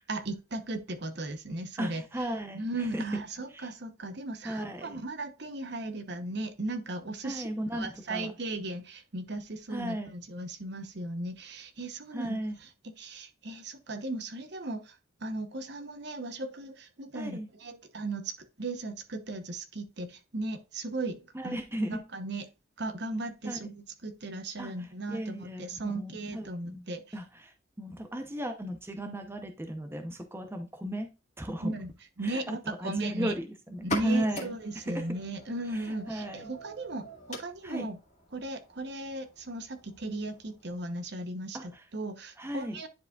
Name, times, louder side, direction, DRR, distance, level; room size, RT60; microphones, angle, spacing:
voice 1, 0.1-2.3 2.5-7.5 7.7-21.6 21.9-22.5 22.8-27.0 31.6-31.9 32.2-33.4 33.8-38.0 38.3-42.9, right 2 dB, 55° right, 0.9 m, -37 dB
voice 2, 1.8-3.0 3.5-3.7 4.4-5.0 7.2-8.3 9.7-10.1 12.1-12.6 17.1-17.5 21.3-22.0 23.5-23.7 24.6-31.1 31.4-31.7 32.2-35.0 35.7-36.5 37.6-37.9 41.5-41.8 42.4-42.8, equal, 10° right, 0.7 m, -36 dB
sound 1, 33.7-41.2, left 1 dB, 35° left, 2.1 m, -43 dB
10.5 x 4.8 x 2.4 m
head